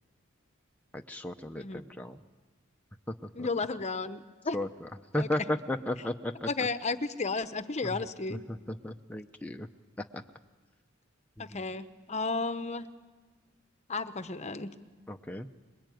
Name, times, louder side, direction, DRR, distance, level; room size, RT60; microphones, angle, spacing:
voice 1, 0.9-2.2 3.4-3.5 4.5-6.7 7.8-8.0 8.5-9.7 10.1-10.2 11.4-11.7 15.1-15.5, left 1 dB, 10° left, 4 dB, 0.7 m, -35 dB
voice 2, 3.3-4.6 5.2-5.3 6.5-8.4 11.4-12.9 13.9-14.7, left 3 dB, 35° left, 11 dB, 0.9 m, -33 dB
26.0 x 21.5 x 9.2 m, 1.3 s
head